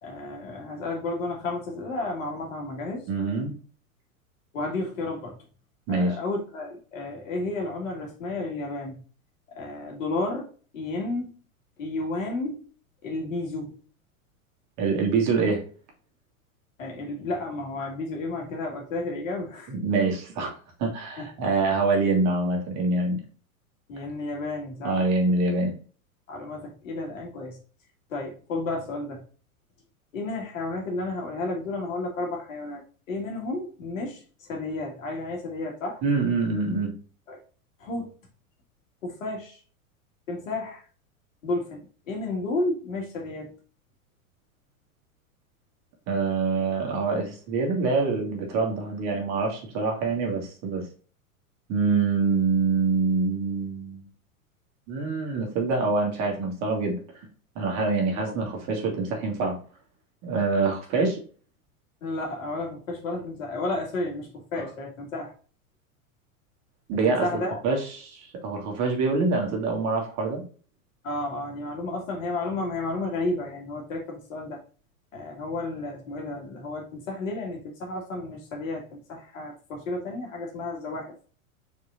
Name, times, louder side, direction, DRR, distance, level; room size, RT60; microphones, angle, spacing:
voice 1, 0.0-3.1 4.5-5.4 5.9-9.0 9.5-10.5 10.7-11.3 11.8-12.7 13.0-13.8 16.8-19.7 21.2-21.3 23.9-25.3 26.3-27.6 28.1-29.2 30.1-32.8 33.1-36.0 37.3-37.4 37.8-38.1 39.0-39.6 40.3-40.8 41.4-43.5 58.2-58.4 62.0-65.3 67.1-67.7 71.0-74.6 75.1-81.2, left 2 dB, 65° left, 0 dB, 2.0 m, -32 dB
voice 2, 3.1-3.5 5.9-6.2 14.8-15.6 19.7-20.5 20.8-23.2 24.8-25.7 36.0-36.9 46.1-50.9 51.7-54.1 54.9-57.0 57.6-59.6 60.2-61.2 66.9-67.3 67.6-70.4, right 3 dB, 40° right, 1 dB, 2.0 m, -25 dB
4.8 x 4.4 x 2.5 m, 0.40 s
figure-of-eight pair, 90°, 43 cm